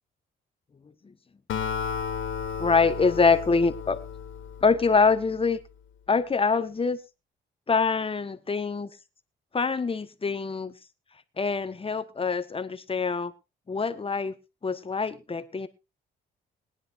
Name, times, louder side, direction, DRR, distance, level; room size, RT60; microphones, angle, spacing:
Acoustic guitar, 1.5-5.1, left 7 dB, 75° left, 2.0 m, -33 dB
voice 1, 2.6-4.0 4.6-5.6 6.1-7.0 7.7-8.9 9.5-10.7 11.4-13.3 13.7-14.3 14.6-15.7, left 4 dB, 30° left, 11 dB, 1.3 m, -24 dB
21.0 x 10.5 x 2.6 m, 0.25 s
cardioid pair, 90°, 20 cm